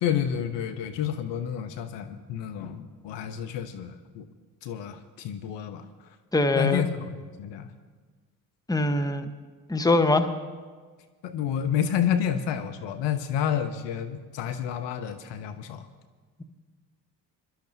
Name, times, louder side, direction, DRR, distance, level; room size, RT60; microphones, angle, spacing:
voice 1, 0.0-4.3 4.6-5.8 6.6-7.0 7.4-7.7 11.2-15.9, left 9 dB, 60° left, 8 dB, 1.0 m, -29 dB
voice 2, 6.3-6.8 8.7-9.3 9.7-10.3, left 2 dB, 5° left, 6 dB, 1.2 m, -22 dB
26.5 x 12.0 x 2.8 m, 1.5 s
hypercardioid pair, 50°, 50 cm